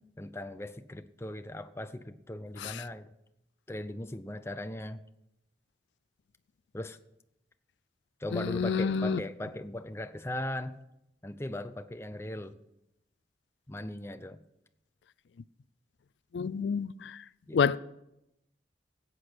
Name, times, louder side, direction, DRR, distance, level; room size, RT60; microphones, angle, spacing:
voice 1, 0.2-3.1 3.7-5.0 6.7-7.0 8.2-10.8 11.2-12.6 13.7-14.4 17.5-17.8, left 1 dB, 15° left, 0.5 m, -38 dB
voice 2, 8.3-9.2 16.3-17.2 17.5-17.8, left 6 dB, 80° left, 0.4 m, -28 dB
17.0 x 8.3 x 6.0 m
head